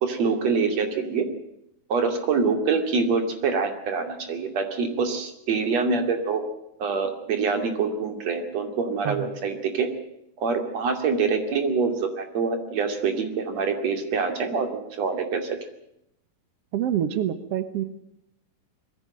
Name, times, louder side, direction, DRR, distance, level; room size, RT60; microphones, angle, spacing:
voice 1, 0.0-1.3 1.9-6.4 6.8-9.9 10.4-15.5, right 5 dB, 50° right, 6 dB, 3.4 m, -25 dB
voice 2, 16.7-17.8, right 10 dB, 70° right, 11 dB, 1.4 m, -26 dB
22.0 x 15.5 x 8.8 m, 0.79 s
omnidirectional pair, 4.3 m